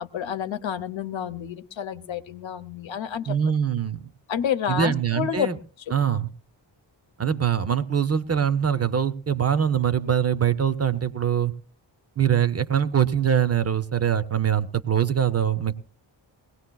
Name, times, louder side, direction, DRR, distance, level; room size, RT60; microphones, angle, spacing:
voice 1, 0.0-3.4 4.3-5.5 5.9-6.0, left 8 dB, 80° left, 10 dB, 0.8 m, -29 dB
voice 2, 3.3-4.0 4.7-5.6 5.9-6.3 7.2-11.5 12.2-15.7, right 8 dB, 35° right, 12 dB, 0.6 m, -23 dB
21.0 x 17.5 x 2.3 m, 0.40 s
wide cardioid pair, 145°, 45 cm